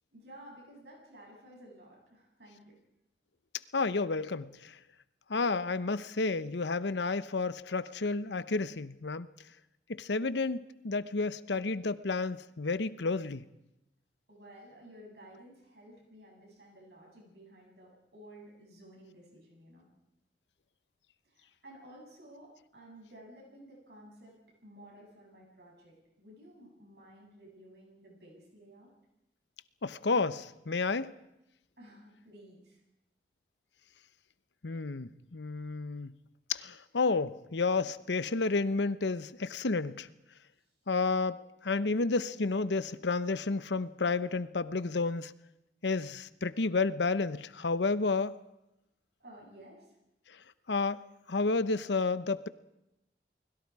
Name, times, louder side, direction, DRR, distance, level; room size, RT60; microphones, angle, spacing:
voice 1, 0.1-2.8 14.3-19.9 21.2-24.4 24.6-28.9 31.8-32.8 49.2-50.0, right 1 dB, 70° right, -1 dB, 7.8 m, -54 dB
voice 2, 3.7-4.8 5.3-9.3 9.9-13.4 29.8-31.1 34.6-36.1 36.5-40.1 40.9-45.3 45.8-48.4 50.7-51.0 51.3-52.5, left 3 dB, 90° left, 14 dB, 0.9 m, -31 dB
29.5 x 21.0 x 4.8 m, 0.90 s
head